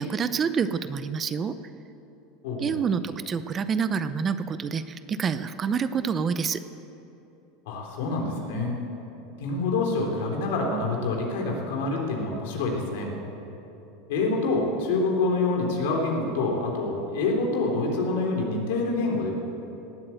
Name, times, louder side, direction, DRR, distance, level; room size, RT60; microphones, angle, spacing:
voice 1, 0.0-1.6 2.6-6.6, right 6 dB, 30° right, 12 dB, 0.6 m, -27 dB
voice 2, 2.4-2.8 7.7-8.8 9.4-13.1 14.1-19.3, left 3 dB, 80° left, 0 dB, 3.5 m, -26 dB
18.0 x 8.6 x 8.2 m, 2.9 s
supercardioid pair, 125°, 0 cm